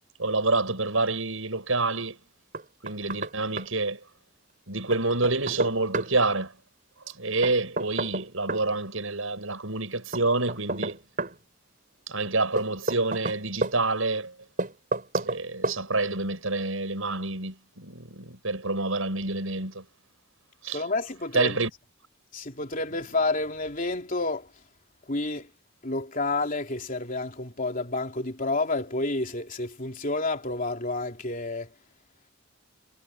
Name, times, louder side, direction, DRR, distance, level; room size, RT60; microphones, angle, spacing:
voice 1, 0.2-2.2 2.8-4.0 4.7-6.5 7.2-11.0 12.1-14.3 15.2-19.8 20.6-20.8 21.3-21.7, right 3 dB, 75° right, 7.1 m, -27 dB
Knock, 2.5-3.3 3.6-3.7 4.9-6.1 7.4-8.7 10.1-11.4 12.6-13.8 14.6-15.4 15.6-15.8, right 2 dB, 40° right, 6.8 m, -30 dB
voice 2, 20.7-21.6 22.3-24.5 25.1-25.5 25.8-31.7, left 2 dB, 40° left, 3.4 m, -29 dB
head